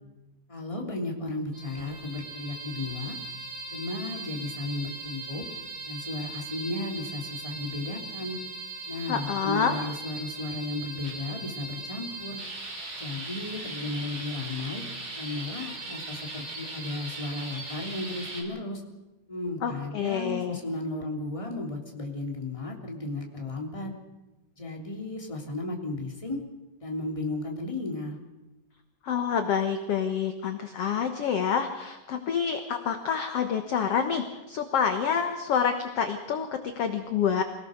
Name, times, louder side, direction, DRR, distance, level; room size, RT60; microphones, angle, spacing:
voice 1, 0.5-3.2 3.7-5.5 5.8-8.4 8.9-12.4 13.0-14.8 15.2-18.8 19.3-23.9 24.6-26.4 26.8-28.2, left 2 dB, 10° left, 1 dB, 3.0 m, -34 dB
sound 1, 1.5-18.4, right 3 dB, 40° right, 5.5 m, -39 dB
voice 2, 9.1-9.8 19.6-20.6 29.0-37.4, left 7 dB, 55° left, 7 dB, 1.9 m, -27 dB
26.0 x 18.0 x 6.6 m, 1.0 s
omnidirectional pair, 3.9 m